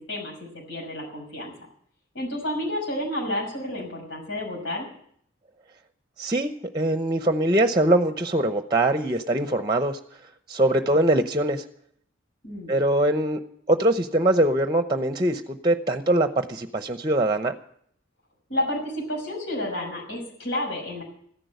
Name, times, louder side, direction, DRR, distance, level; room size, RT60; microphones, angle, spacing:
voice 1, 0.7-1.5 2.1-4.9 12.4-12.7 18.5-21.0, left 1 dB, 75° left, 0 dB, 6.0 m, -30 dB
voice 2, 6.2-10.0 10.5-11.6 12.7-13.4 13.7-17.6, right 1 dB, 20° right, 8 dB, 0.8 m, -22 dB
14.5 x 10.5 x 8.0 m, 0.65 s
head